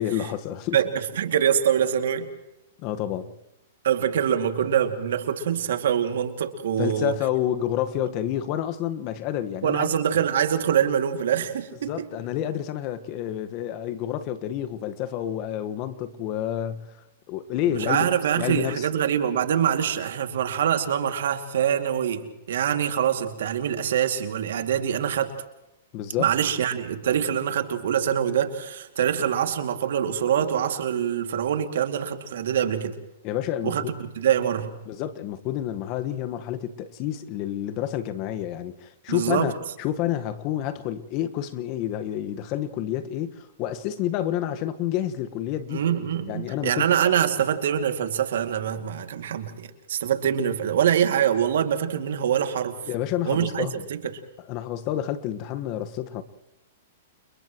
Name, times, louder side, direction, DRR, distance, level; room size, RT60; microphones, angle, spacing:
voice 1, 0.0-0.8 2.8-3.3 6.8-10.0 11.9-17.0 17.3-18.9 25.9-26.3 33.2-33.9 34.9-39.5 39.8-45.8 46.3-46.9 52.9-53.8 54.5-56.2, left 11 dB, 45° left, 1.5 m, -29 dB
voice 2, 0.7-2.3 3.8-7.2 9.6-12.1 17.7-25.3 26.2-32.9 33.6-33.8 34.2-34.8 39.1-39.5 45.7-52.8 53.3-54.0, right 9 dB, 75° right, 2.4 m, -24 dB
30.0 x 30.0 x 3.1 m
hypercardioid pair, 125°, 0 cm